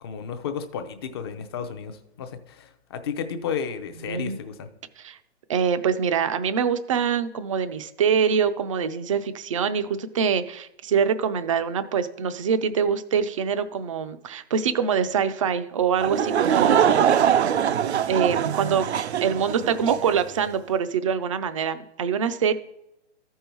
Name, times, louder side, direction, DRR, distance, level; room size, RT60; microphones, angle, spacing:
voice 1, 0.0-4.7, left 7 dB, 20° left, 8 dB, 0.6 m, -33 dB
voice 2, 4.0-4.4 5.0-5.2 5.5-17.5 18.1-19.0 19.2-22.5, right 7 dB, 30° right, 11 dB, 0.5 m, -24 dB
Laughter / Crowd, 16.0-20.2, right 9 dB, 70° right, 0.6 m, -22 dB
13.5 x 5.5 x 4.5 m, 0.85 s
hypercardioid pair, 150°, 35 cm